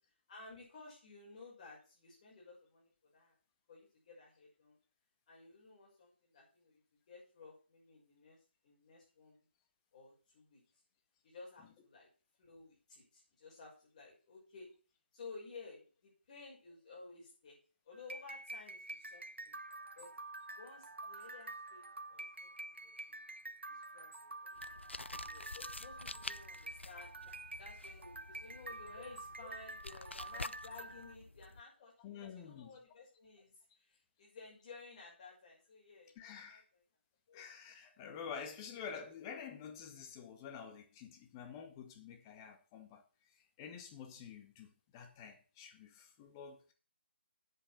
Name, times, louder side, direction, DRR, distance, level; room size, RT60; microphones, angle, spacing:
voice 1, 0.3-3.4 3.7-4.8 5.3-6.8 7.1-8.4 8.6-9.5 9.9-10.6 11.2-12.1 12.4-14.7 15.1-17.6 17.8-19.6 20.0-20.1 20.5-23.2 23.7-24.5 25.1-27.1 27.6-36.8 37.3-37.6, left 3 dB, 40° left, 6.0 m, -55 dB
sound 1, 17.9-31.2, right 2 dB, 80° right, 1.0 m, -48 dB
sound 2, 24.5-31.6, left 2 dB, 90° left, 0.5 m, -49 dB
voice 2, 32.0-32.7 36.2-36.6 37.3-43.0 43.3-46.7, left 7 dB, 20° left, 1.8 m, -49 dB
8.3 x 8.2 x 6.1 m
figure-of-eight pair, 145°, 6 cm